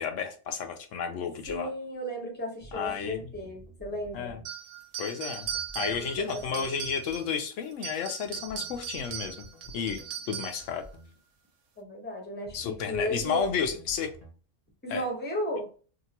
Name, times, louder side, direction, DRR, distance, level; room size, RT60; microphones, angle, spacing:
voice 1, 0.0-1.7 2.7-3.2 4.1-4.4 5.0-5.5 5.7-9.5 9.7-10.8 12.5-14.1 14.9-15.1, left 6 dB, 90° left, 5 dB, 1.0 m, -32 dB
sound 1, 1.4-1.7 2.6-4.5 5.4-7.3 8.2-10.1 10.6-11.1 12.4-14.3, equal, 35° left, 0.9 m, -50 dB
voice 2, 1.5-4.3 5.8-6.7 11.8-13.5 14.8-15.7, equal, 10° left, 1 dB, 0.8 m, -35 dB
sound 2, 4.4-7.3 7.7-10.7, right 9 dB, 80° right, 1.0 m, -38 dB
2.8 x 2.5 x 2.8 m, 0.38 s
omnidirectional pair, 1.3 m